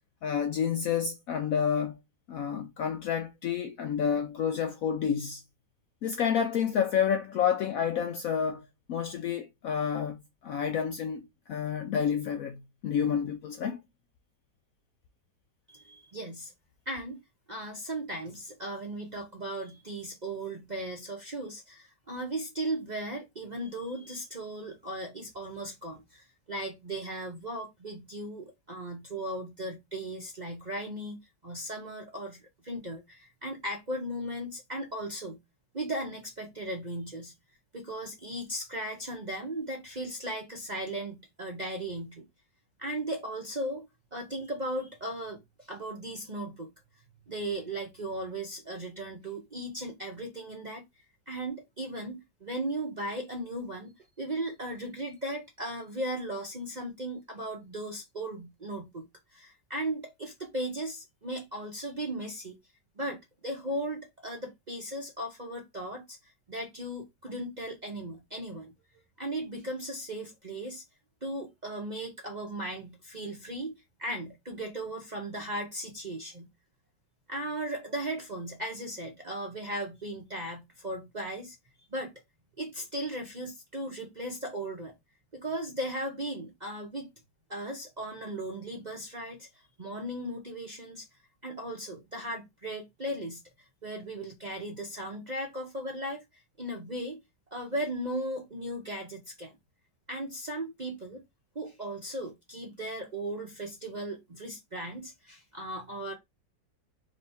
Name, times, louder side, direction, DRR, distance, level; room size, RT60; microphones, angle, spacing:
voice 1, 0.2-2.0 2.3-5.4 6.0-11.2 11.5-13.8, left 8 dB, 70° left, 0.8 m, -29 dB
voice 2, 15.7-16.5 16.9-17.2 17.5-35.4 35.7-37.3 37.7-42.3 42.8-46.7 47.3-50.8 51.3-59.0 59.3-62.6 63.0-66.2 66.5-68.7 69.2-70.8 71.2-76.5 77.3-81.6 81.9-82.1 82.6-84.9 85.3-87.1 87.5-89.5 89.8-91.1 91.4-93.4 93.8-97.2 97.5-99.6 100.1-101.2 101.5-106.1, right 1 dB, 40° right, 0.7 m, -37 dB
3.3 x 3.1 x 4.1 m
omnidirectional pair, 1.9 m